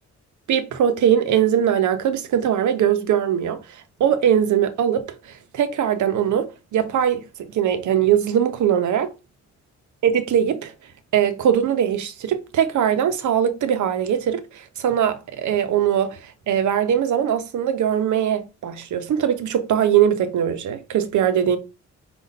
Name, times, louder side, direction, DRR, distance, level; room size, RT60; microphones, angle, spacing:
voice 1, 0.5-6.5 6.7-7.2 7.5-9.1 10.0-10.7 11.1-21.6, right 9 dB, 85° right, 0.8 m, -21 dB
5.2 x 2.5 x 4.0 m
cardioid pair, 85°, 29 cm